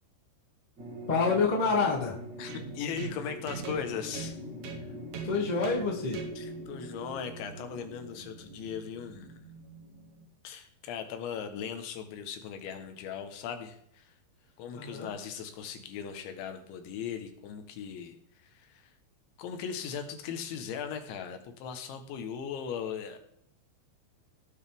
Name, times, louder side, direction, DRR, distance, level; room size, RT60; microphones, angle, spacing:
sound 1, 0.8-9.0, equal, 35° right, 2.2 m, -44 dB
voice 1, 1.1-2.1 5.2-6.2 14.7-15.1, left 4 dB, 20° left, -2 dB, 1.0 m, -27 dB
voice 2, 2.4-4.4 6.4-9.3 10.4-14.1 14.6-18.2 18.4-18.9 19.4-23.2, left 7 dB, 75° left, 6 dB, 3.5 m, -38 dB
sound 2, 2.5-10.3, right 5 dB, 65° right, 3.4 m, -44 dB
18.5 x 8.2 x 3.6 m, 0.73 s
omnidirectional pair, 5.4 m